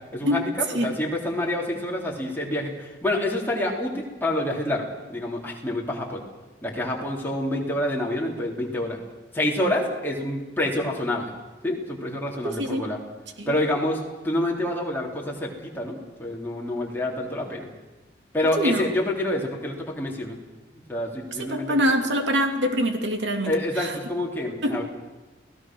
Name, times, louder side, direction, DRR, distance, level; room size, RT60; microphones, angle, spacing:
voice 1, 0.1-6.2 6.6-9.0 9.3-11.3 11.6-13.0 13.5-17.7 18.3-20.4 20.9-21.8 23.4-24.8, left 1 dB, 10° left, -3 dB, 3.6 m, -27 dB
voice 2, 12.4-12.8 13.4-13.5 18.6-18.9 21.4-23.5 23.8-23.9 24.6-24.7, equal, 75° right, 4 dB, 2.8 m, -24 dB
30.0 x 17.5 x 6.3 m, 1.1 s
head